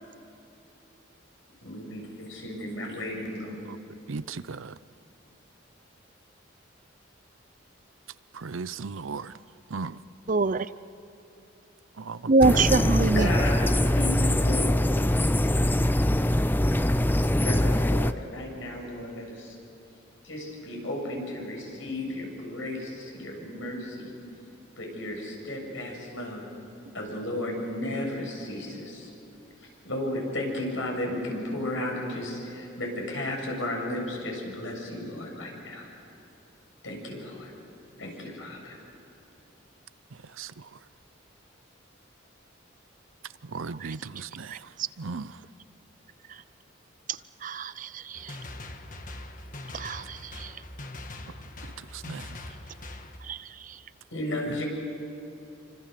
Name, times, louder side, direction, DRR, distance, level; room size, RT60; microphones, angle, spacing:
voice 1, 1.6-3.6 13.1-14.8 17.1-19.6 20.2-24.1 24.8-26.4 26.9-29.1 29.6-35.9 36.8-37.5 38.0-38.8 54.1-54.6, left 1 dB, 75° left, 7.4 m, -34 dB
voice 2, 4.1-4.8 8.3-9.4 9.7-10.0 11.9-12.7 40.1-40.8 43.4-45.4 51.6-52.4 54.5-54.6, right 4 dB, 85° right, 0.7 m, -37 dB
voice 3, 10.3-10.7 12.3-13.4 43.8-43.9 47.4-48.3 49.7-50.5 53.3-53.4, right 3 dB, 40° right, 0.5 m, -24 dB
sound 1, 12.4-18.1, left 1 dB, 10° left, 0.5 m, -23 dB
sound 2, 48.1-53.2, left 2 dB, 40° left, 1.5 m, -42 dB
28.5 x 25.5 x 6.8 m
head